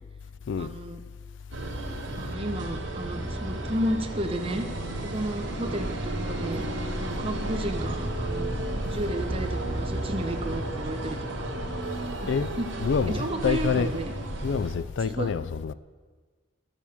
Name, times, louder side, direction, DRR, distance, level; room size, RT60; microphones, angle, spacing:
voice 1, 0.6-1.0 2.2-4.7 5.0-6.7 7.0-8.5 8.8-11.5 12.2-12.7 13.1-14.1 15.0-15.3, right 1 dB, 30° right, 1.1 m, -32 dB
sound 1, 1.5-14.8, right 1 dB, 75° right, 1.8 m, -32 dB
voice 2, 12.8-13.9 14.4-15.7, left 6 dB, 70° left, 0.4 m, -27 dB
12.5 x 7.3 x 7.0 m
head